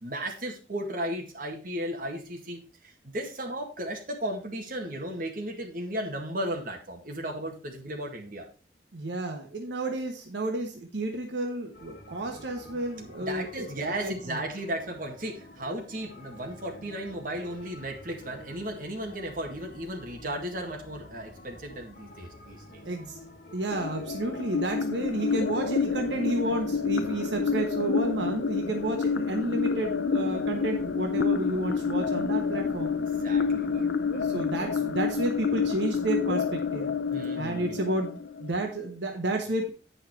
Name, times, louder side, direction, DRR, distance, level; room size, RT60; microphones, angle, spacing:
voice 1, 0.0-8.4 13.2-22.8 33.2-34.5 37.1-38.0, right 1 dB, 50° right, 1 dB, 2.0 m, -35 dB
voice 2, 8.9-14.4 22.8-23.2 23.5-32.9 34.2-36.9 37.4-39.7, right 2 dB, 80° right, 3 dB, 1.2 m, -31 dB
sound 1, 11.7-27.4, left 1 dB, 55° left, 1.7 m, -49 dB
sound 2, 23.7-38.7, left 5 dB, 80° left, 0.7 m, -29 dB
9.0 x 5.6 x 4.6 m, 0.35 s
head